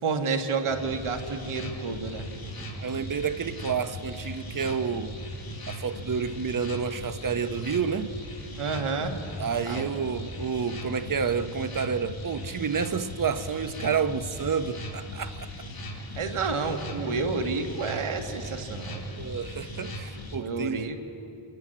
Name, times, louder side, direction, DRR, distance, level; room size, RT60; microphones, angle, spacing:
voice 1, 0.0-2.3 8.6-9.2 9.7-9.9 16.2-19.1 20.4-21.0, right 4 dB, 75° right, 1.9 m, -30 dB
sound 1, 0.7-20.4, left 1 dB, 45° left, 2.8 m, -38 dB
voice 2, 2.8-5.1 5.7-8.1 9.4-15.5 17.0-17.1 19.1-20.9, right 6 dB, 40° right, 0.9 m, -29 dB
29.0 x 11.0 x 8.7 m
wide cardioid pair, 105°, 50 cm